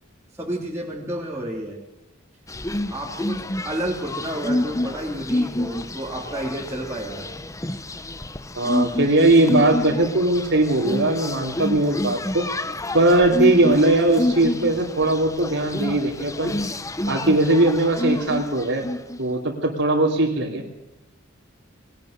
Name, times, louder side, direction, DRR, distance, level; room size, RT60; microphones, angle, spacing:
voice 1, 0.4-1.8 2.9-7.3, right 1 dB, 15° right, -5 dB, 3.2 m, -30 dB
sound 1, 2.5-19.2, left 1 dB, 15° left, 0.9 m, -28 dB
voice 2, 8.5-12.5 12.9-16.5 17.1-18.8 19.2-20.6, right 2 dB, 65° right, -4 dB, 3.2 m, -19 dB
20.5 x 19.5 x 6.7 m, 0.94 s
head